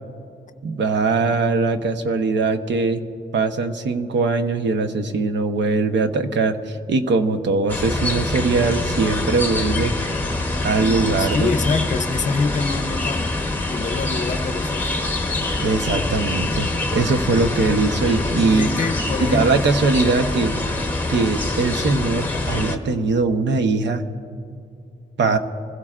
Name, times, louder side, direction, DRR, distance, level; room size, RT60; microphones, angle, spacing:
voice 1, 0.6-3.0 3.3-10.0 10.6-11.5 15.6-18.7 19.2-20.5 21.1-24.0 25.2-25.4, right 3 dB, 65° right, 7 dB, 0.9 m, -21 dB
sound 1, 7.7-22.8, left 2 dB, 10° left, 0.9 m, -25 dB
voice 2, 11.2-13.4 13.7-14.9 18.3-19.7, left 4 dB, 40° left, 9 dB, 0.6 m, -26 dB
26.0 x 16.0 x 2.5 m, 2.6 s
wide cardioid pair, 180°, 20 cm